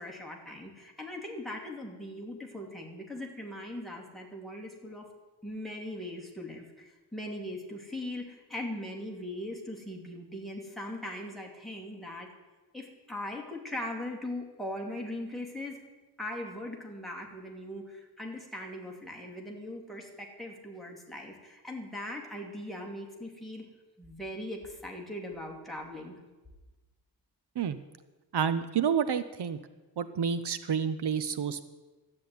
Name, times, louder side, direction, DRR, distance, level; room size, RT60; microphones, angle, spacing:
voice 1, 0.0-5.1 5.4-12.3 12.7-15.8 16.2-23.7 24.0-26.1, left 1 dB, ahead, 0 dB, 2.4 m, -40 dB
voice 2, 28.3-29.6 30.0-31.7, right 7 dB, 75° right, 13 dB, 0.7 m, -29 dB
12.5 x 8.6 x 9.5 m, 1.2 s
wide cardioid pair, 175°, 40 cm